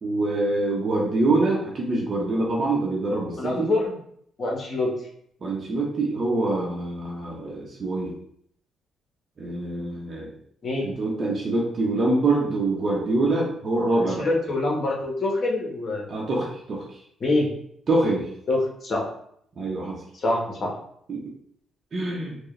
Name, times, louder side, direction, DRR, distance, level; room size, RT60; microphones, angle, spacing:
voice 1, 0.0-3.7 5.4-8.1 9.4-10.3 10.8-14.3 16.1-16.8 17.9-18.3 19.6-20.0 21.1-21.2 21.9-22.4, right 2 dB, 45° right, -3 dB, 0.9 m, -25 dB
voice 2, 3.4-4.0 4.4-4.9 10.6-10.9 14.0-16.1 17.2-17.5 18.5-19.0 20.1-20.7, left 2 dB, 45° left, -1 dB, 1.2 m, -25 dB
4.6 x 2.3 x 3.2 m, 0.68 s
cardioid pair, 90°, 0 cm